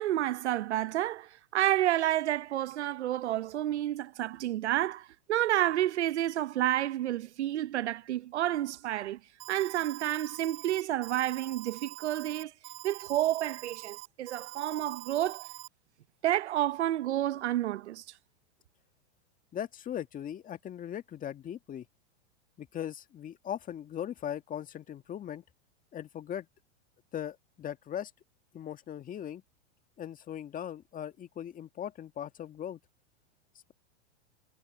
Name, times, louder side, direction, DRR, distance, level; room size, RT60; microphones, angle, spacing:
voice 1, 0.0-9.2 9.5-12.5 12.8-15.5 16.2-18.0, right 13 dB, 80° right, 0.9 m, -30 dB
Alarm, 9.4-15.7, right 40 dB or more, 50° right, 4.5 m, -45 dB
voice 2, 19.5-21.9 22.6-25.4 25.9-26.5 27.1-28.1 28.5-29.4 30.0-32.8, left 10 dB, 25° left, 1.7 m, -39 dB
hypercardioid pair, 120°, 34 cm